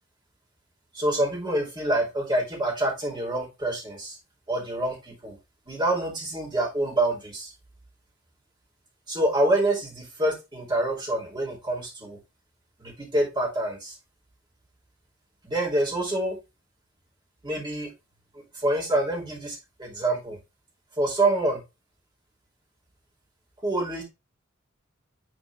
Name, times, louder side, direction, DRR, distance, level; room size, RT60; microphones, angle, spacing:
voice 1, 0.9-4.2 4.5-5.3 5.7-7.5 9.1-12.2 12.8-14.0 15.4-16.3 17.4-17.9 18.5-20.4 21.0-21.6 23.6-24.0, right 1 dB, 25° right, -4 dB, 2.9 m, -26 dB
6.4 x 4.4 x 3.3 m, 0.26 s
head